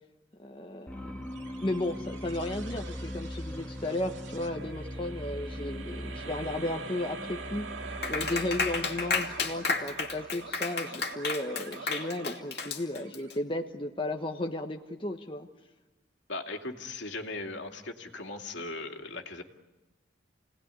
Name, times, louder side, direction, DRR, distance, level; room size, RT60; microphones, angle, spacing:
voice 1, 0.4-1.2 1.6-15.5, left 1 dB, 25° left, 3 dB, 1.2 m, -34 dB
sound 1, 0.9-10.5, left 1 dB, 5° left, 1.9 m, -41 dB
sound 2, 1.3-13.9, right 4 dB, 85° right, 2.1 m, -45 dB
Clapping, 8.0-13.3, left 4 dB, 55° left, 2.5 m, -32 dB
voice 2, 16.3-19.4, left 2 dB, 70° left, 3 dB, 2.6 m, -38 dB
30.0 x 19.0 x 9.9 m, 1.1 s
head